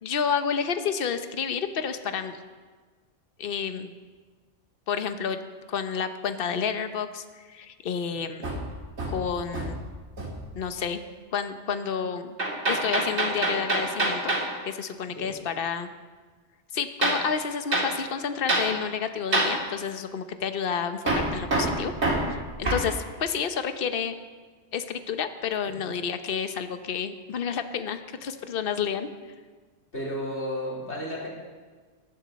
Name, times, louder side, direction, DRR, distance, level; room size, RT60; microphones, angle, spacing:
voice 1, 0.0-2.4 3.4-3.9 4.9-5.4 5.7-8.5 9.1-9.8 10.5-11.0 11.3-12.4 12.7-14.3 14.6-15.9 16.7-21.9 22.3-24.1 24.7-29.1, left 7 dB, 55° left, 9 dB, 1.0 m, -30 dB
Hammer, 8.4-9.9 10.2-10.5 12.4-14.5 17.0-17.3 17.7-17.9 18.5-18.7 19.3-19.6 21.1-22.9, right 2 dB, 75° right, 2.7 m, -26 dB
voice 2, 29.9-31.3, equal, 75° left, -6 dB, 4.5 m, -33 dB
22.5 x 11.0 x 4.2 m, 1.4 s
omnidirectional pair, 1.2 m